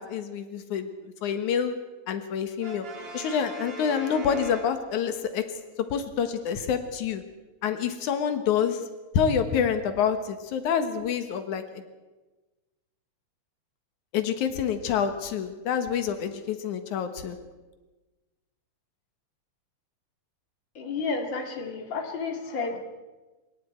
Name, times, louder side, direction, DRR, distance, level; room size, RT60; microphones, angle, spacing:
voice 1, 0.0-1.8 2.1-2.9 3.1-5.4 5.9-7.2 7.6-8.8 9.1-11.8 14.1-17.4, left 7 dB, 90° left, 8 dB, 2.7 m, -27 dB
Brass instrument, 2.6-5.3, right 2 dB, 65° right, 3.3 m, -40 dB
voice 2, 20.8-22.8, left 4 dB, 40° left, 4 dB, 2.9 m, -31 dB
26.0 x 22.5 x 4.5 m, 1.2 s
omnidirectional pair, 3.3 m